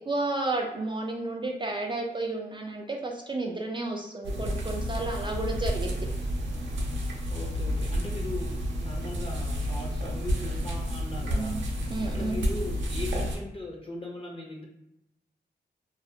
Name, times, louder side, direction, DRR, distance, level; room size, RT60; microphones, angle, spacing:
voice 1, 0.1-6.0 11.3-11.6 11.9-12.4, right 2 dB, 25° right, 0 dB, 0.3 m, -32 dB
sound 1, 4.2-13.4, equal, 85° right, 0.5 m, -30 dB
voice 2, 7.3-11.6 12.1-14.6, left 2 dB, 30° left, -1 dB, 0.7 m, -39 dB
2.4 x 2.0 x 2.6 m, 0.83 s
cardioid pair, 55°, 19 cm